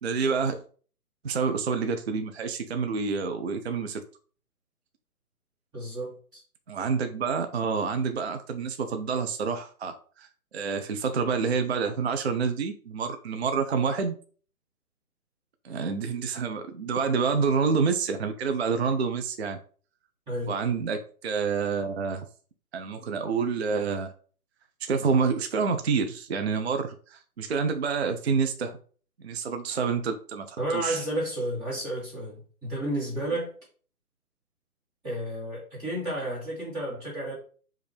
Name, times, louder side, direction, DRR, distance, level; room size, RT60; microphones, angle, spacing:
voice 1, 0.0-0.6 1.2-4.0 6.7-14.2 15.6-19.6 20.5-22.2 22.7-24.1 24.8-28.8 29.2-31.0, right 5 dB, 45° right, 0.4 m, -28 dB
voice 2, 5.7-6.4 20.3-20.5 30.6-33.5 35.0-37.3, right 1 dB, 10° right, 1.3 m, -32 dB
5.1 x 2.5 x 3.3 m
hypercardioid pair, 155°, 45 cm